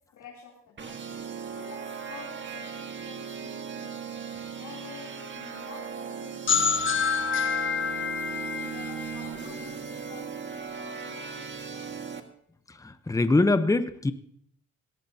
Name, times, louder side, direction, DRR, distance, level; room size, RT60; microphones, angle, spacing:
voice 1, 0.1-1.0 1.5-4.1 4.6-7.6 8.0-11.9, left 6 dB, 70° left, -3 dB, 3.4 m, -49 dB
sound 1, 0.8-12.2, right 6 dB, 40° right, 1.6 m, -38 dB
sound 2, 6.5-10.1, left 6 dB, 40° left, 1.2 m, -28 dB
voice 2, 12.7-14.1, left 2 dB, 10° left, 11 dB, 0.8 m, -23 dB
17.5 x 17.0 x 2.8 m, 0.65 s
cardioid pair, 90°, 30 cm